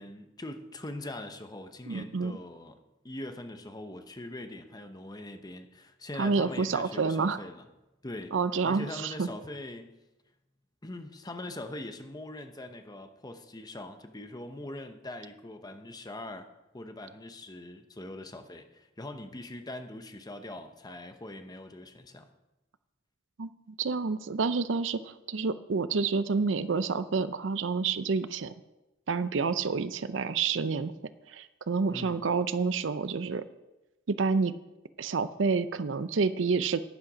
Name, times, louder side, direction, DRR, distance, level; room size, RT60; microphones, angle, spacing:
voice 1, 0.0-2.8 3.0-7.6 8.0-8.4 8.6-9.9 10.8-16.5 16.7-22.3 31.9-32.2, left 1 dB, 20° left, 7 dB, 0.9 m, -42 dB
voice 2, 1.9-2.3 6.2-7.4 8.3-9.3 23.4-23.5 23.8-28.5 29.1-30.9 31.3-33.4 34.1-34.5 35.0-36.8, right 4 dB, 70° right, 14 dB, 0.6 m, -28 dB
11.5 x 10.5 x 5.1 m, 1.0 s
head